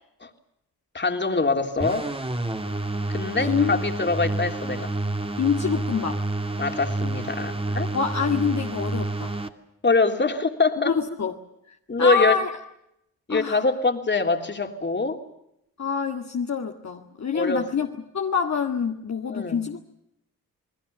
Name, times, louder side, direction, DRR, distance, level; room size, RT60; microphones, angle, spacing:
voice 1, 0.9-2.1 3.1-4.9 6.6-7.9 9.8-11.0 11.9-12.4 13.3-15.2 17.3-17.7 19.3-19.6, left 3 dB, 30° left, 5 dB, 3.4 m, -24 dB
sound 1, 1.8-9.5, right 2 dB, 15° right, 2.4 m, -29 dB
voice 2, 3.5-3.8 5.4-6.2 7.9-9.3 10.8-11.3 11.7-12.5 13.3-13.6 15.8-17.9 18.1-19.8, left 6 dB, 50° left, 2 dB, 2.0 m, -26 dB
29.5 x 20.0 x 6.9 m, 0.80 s
cardioid pair, 70°, 35 cm